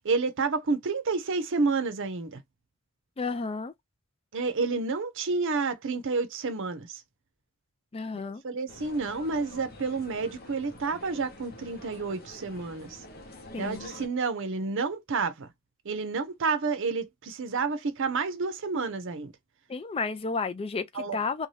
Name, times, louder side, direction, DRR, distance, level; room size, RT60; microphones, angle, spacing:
voice 1, 0.0-2.4 4.3-7.0 8.4-13.0 13.6-15.5 15.8-19.3 20.9-21.2, right 4 dB, 60° right, 0.6 m, -30 dB
voice 2, 3.2-3.7 7.9-8.4 13.5-13.8 19.7-21.5, left 4 dB, 25° left, 0.4 m, -32 dB
sound 1, 8.7-14.1, left 2 dB, 45° left, 0.8 m, -47 dB
2.7 x 2.2 x 3.1 m
head